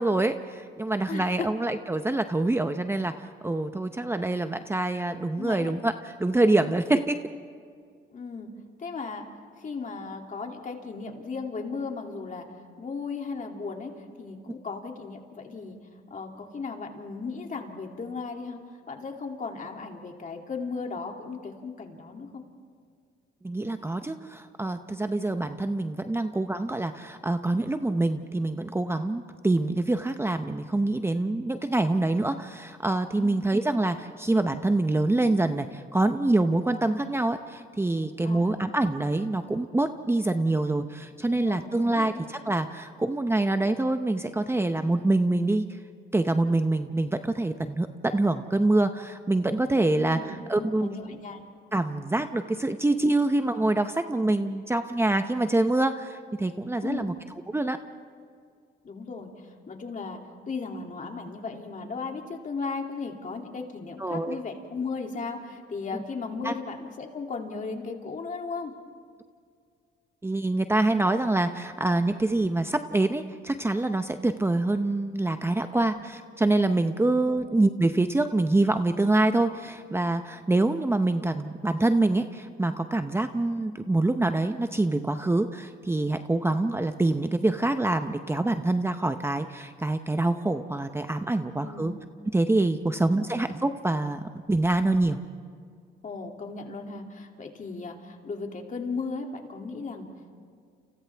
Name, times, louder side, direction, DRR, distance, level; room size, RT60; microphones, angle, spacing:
voice 1, 0.0-7.2 14.5-14.6 23.4-45.8 46.1-50.9 51.7-57.1 57.5-57.8 64.0-64.4 66.4-66.5 70.2-91.9 92.3-95.2, right 2 dB, 10° right, 8 dB, 0.8 m, -25 dB
voice 2, 1.1-1.5 5.4-5.7 8.1-8.5 8.8-9.3 9.6-12.5 12.8-15.8 16.1-18.6 18.9-22.4 33.2-33.4 38.2-38.6 41.3-42.2 49.9-51.4 56.8-57.1 58.8-60.2 60.5-68.7 75.7-75.9 77.2-77.5 91.6-92.0 92.9-93.4 96.0-100.1, left 4 dB, 40° left, 2 dB, 2.7 m, -36 dB
29.5 x 28.0 x 3.5 m, 2.2 s
cardioid pair, 90°, 20 cm